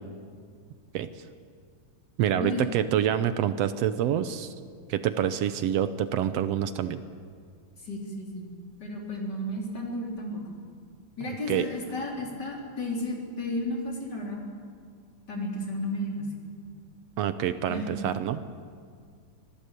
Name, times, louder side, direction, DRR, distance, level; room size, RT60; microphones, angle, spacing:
voice 1, 0.9-1.2 2.2-4.5 4.9-7.0 11.5-11.7 17.2-18.4, right 10 dB, 75° right, 11 dB, 1.5 m, -27 dB
voice 2, 2.3-2.7 7.8-8.5 8.8-10.4 11.2-14.4 15.3-16.3 17.7-18.1, left 1 dB, 30° left, -1 dB, 4.1 m, -33 dB
25.0 x 17.0 x 8.3 m, 2.1 s
omnidirectional pair, 3.6 m